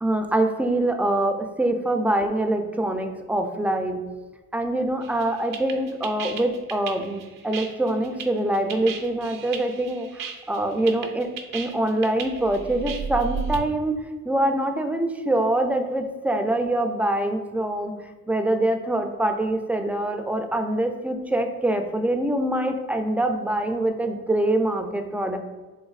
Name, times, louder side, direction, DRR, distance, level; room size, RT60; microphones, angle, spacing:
voice 1, 0.0-4.0 4.5-17.9 18.3-25.4, right 1 dB, 5° right, 5 dB, 0.3 m, -24 dB
sound 1, 5.0-13.6, right 6 dB, 70° right, 0.5 m, -34 dB
4.2 x 2.5 x 2.3 m, 1.2 s
cardioid pair, 65°, 34 cm